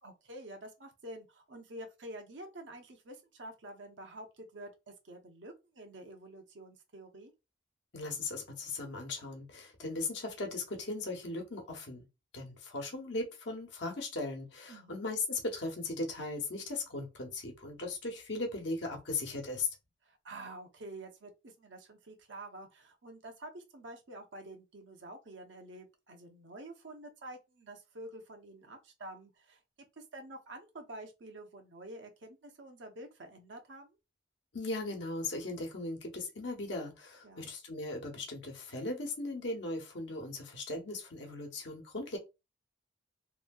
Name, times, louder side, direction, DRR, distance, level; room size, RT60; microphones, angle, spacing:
voice 1, 0.0-7.3 14.7-14.9 20.0-29.6 30.0-34.0 37.2-37.5, right 1 dB, 80° right, 0.8 m, -48 dB
voice 2, 7.9-12.1 12.3-19.7 34.5-42.2, left 2 dB, 70° left, 1.0 m, -38 dB
3.0 x 2.7 x 2.3 m
head